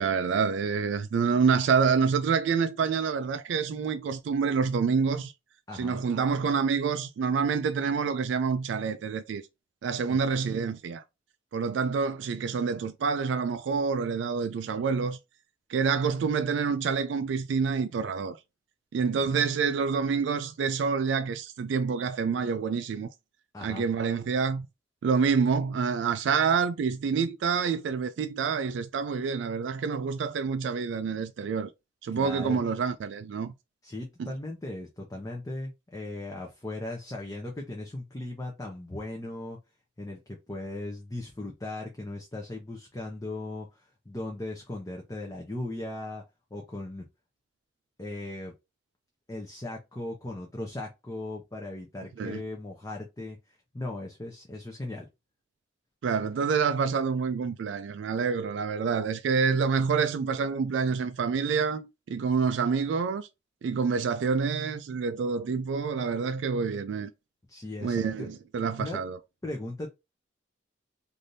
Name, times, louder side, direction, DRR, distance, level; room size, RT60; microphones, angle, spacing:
voice 1, 0.0-5.3 5.7-9.4 9.8-11.0 11.5-15.2 15.7-18.4 18.9-23.1 23.6-24.7 25.0-31.7 32.0-33.5 34.2-34.3 52.2-52.4 56.0-63.3 63.6-67.1 67.8-69.2, right 5 dB, 75° right, 0.3 m, -27 dB
voice 2, 5.7-6.0 10.1-10.2 19.2-19.4 23.5-23.8 32.1-32.6 33.8-39.6 40.0-46.2 46.5-47.0 48.0-48.5 49.3-55.1 67.5-68.3 68.8-69.0 69.4-69.9, left 2 dB, 20° left, 0.6 m, -38 dB
3.3 x 2.6 x 2.6 m
head